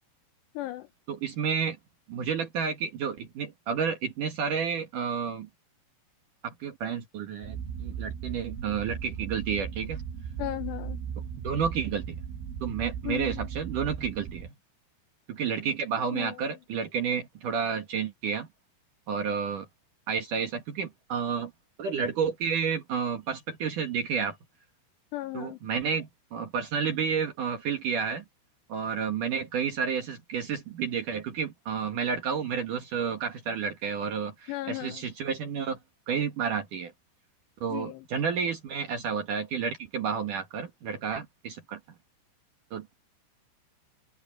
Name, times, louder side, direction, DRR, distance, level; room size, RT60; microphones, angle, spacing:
voice 1, 0.6-0.9 10.4-11.0 13.1-13.5 16.1-16.4 25.1-25.6 34.5-35.0 37.7-38.1, left 17 dB, 80° left, 2.6 m, -35 dB
voice 2, 1.1-1.8 2.1-5.5 6.4-10.0 11.4-12.2 12.6-14.5 15.3-18.5 19.1-19.7 20.1-21.5 21.8-24.4 25.3-28.2 28.7-35.8 36.1-36.9 37.6-41.8 42.7-42.9, right 6 dB, 55° right, 2.6 m, -31 dB
sound 1, 7.4-14.5, right 7 dB, 75° right, 5.0 m, -37 dB
open air
omnidirectional pair, 5.5 m